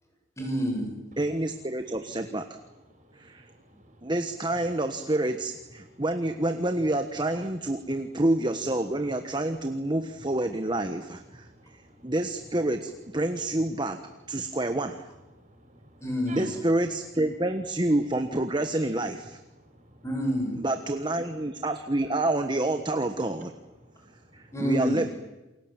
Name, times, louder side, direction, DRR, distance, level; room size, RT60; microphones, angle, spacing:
voice 1, 0.4-1.0 16.0-16.5 20.0-20.6 24.5-25.0, equal, 15° left, 2 dB, 7.5 m, -28 dB
voice 2, 1.2-2.5 3.2-3.5 4.0-11.5 12.0-14.0 14.3-15.1 16.3-19.4 20.6-23.5 24.3-25.1, right 1 dB, 25° right, 7 dB, 1.3 m, -28 dB
voice 3, 2.9-4.1 5.8-6.1 11.4-12.1 14.3-14.6 15.3-16.5 19.6-20.0 23.8-24.5, right 2 dB, 40° right, 4 dB, 6.7 m, -52 dB
29.0 x 22.5 x 8.9 m, 1.1 s
head